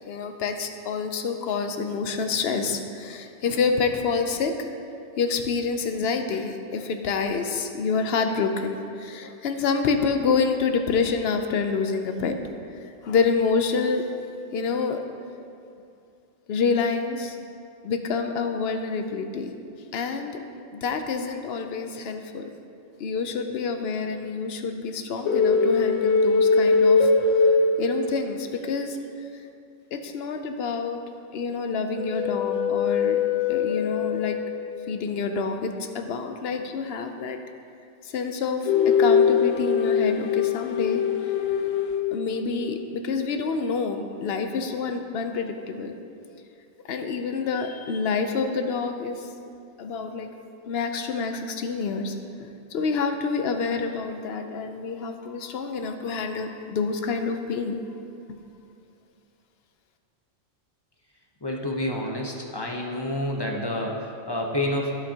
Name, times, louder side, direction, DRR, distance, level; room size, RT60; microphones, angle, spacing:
voice 1, 0.0-4.6 5.2-12.4 12.8-14.0 14.5-15.0 16.5-17.4 17.8-19.5 19.9-20.4 20.7-22.5 23.0-27.1 27.4-27.5 27.8-29.0 29.3-29.4 29.9-31.0 31.3-33.2 33.5-34.4 34.9-37.4 38.0-41.0 42.1-45.9 46.9-49.3 49.8-50.3 50.6-57.8 58.3-58.4, left 5 dB, 60° left, 6 dB, 0.8 m, -27 dB
sound 1, 25.2-28.4 32.0-34.6 38.6-42.5, left 5 dB, 85° left, 0.9 m, -22 dB
voice 2, 61.4-64.9, left 1 dB, 25° left, -1 dB, 0.6 m, -29 dB
15.0 x 5.2 x 2.8 m, 2.5 s
omnidirectional pair, 1.3 m